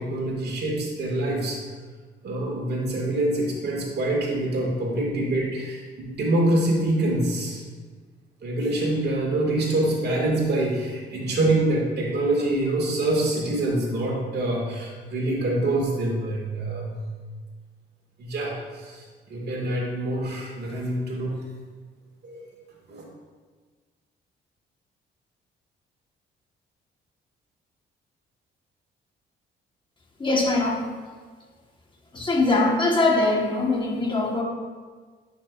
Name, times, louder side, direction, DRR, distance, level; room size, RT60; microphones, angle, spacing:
voice 1, 0.0-1.6 2.2-7.6 8.4-17.0 18.2-21.3 22.2-22.4 22.9-23.0, right 1 dB, 55° right, -2 dB, 2.2 m, -25 dB
voice 2, 30.2-30.8 32.1-34.4, left 2 dB, 25° left, -1 dB, 1.5 m, -22 dB
10.5 x 5.9 x 2.6 m, 1.5 s
cardioid pair, 90°, 20 cm